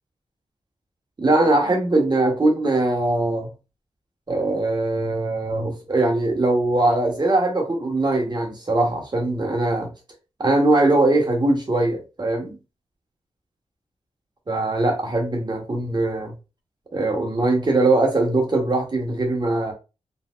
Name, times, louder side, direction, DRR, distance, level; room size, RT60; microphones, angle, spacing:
voice 1, 1.2-3.5 4.3-9.9 10.4-12.6 14.5-16.3 16.9-19.7, right 2 dB, 35° right, 1.1 m, -21 dB
3.9 x 2.0 x 2.5 m
cardioid pair, 65°, 12 cm